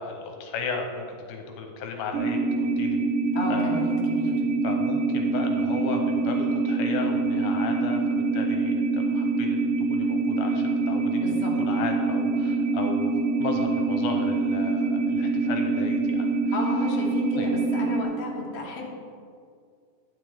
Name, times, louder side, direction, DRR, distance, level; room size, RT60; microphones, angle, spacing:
voice 1, 0.0-3.0 3.5-3.9 4.6-16.3 17.4-17.5, left 5 dB, 80° left, 3 dB, 2.7 m, -35 dB
sound 1, 2.1-18.0, right 3 dB, 70° right, 2.1 m, -25 dB
voice 2, 3.3-4.4 11.2-11.5 16.5-19.0, left 2 dB, 50° left, -3 dB, 1.9 m, -33 dB
11.5 x 9.7 x 3.5 m, 2.2 s
omnidirectional pair, 4.4 m